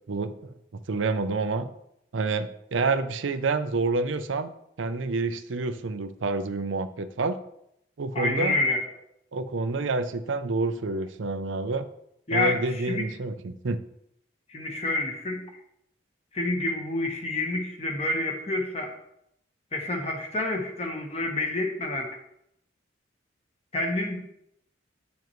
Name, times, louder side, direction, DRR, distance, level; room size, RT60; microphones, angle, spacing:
voice 1, 0.1-0.5 0.9-1.7 2.1-4.5 4.8-7.4 8.0-8.6 9.3-11.9 12.3-13.8, right 3 dB, 85° right, 10 dB, 0.6 m, -28 dB
voice 2, 8.1-8.8 12.3-13.1 14.5-15.4 16.3-18.9 19.7-22.2 23.7-24.2, left 2 dB, 30° left, 2 dB, 1.2 m, -28 dB
9.1 x 7.1 x 3.1 m, 0.77 s
head